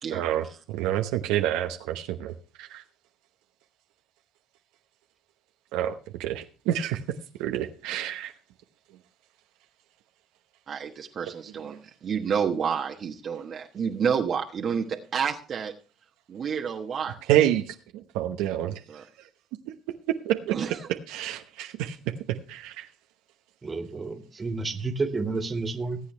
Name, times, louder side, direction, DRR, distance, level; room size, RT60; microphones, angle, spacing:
voice 1, 0.1-2.8 5.7-7.0 7.4-8.3 11.7-11.8 17.3-19.3 20.2-20.6 21.1-22.9, right 12 dB, 85° right, 5 dB, 0.9 m, -28 dB
voice 2, 10.7-15.7 16.3-17.2 18.9-19.0 20.5-20.8, right 7 dB, 50° right, 2 dB, 1.2 m, -29 dB
voice 3, 23.6-26.0, right 3 dB, 25° right, 6 dB, 1.9 m, -30 dB
20.0 x 8.3 x 3.3 m, 0.37 s
supercardioid pair, 85°, 0 cm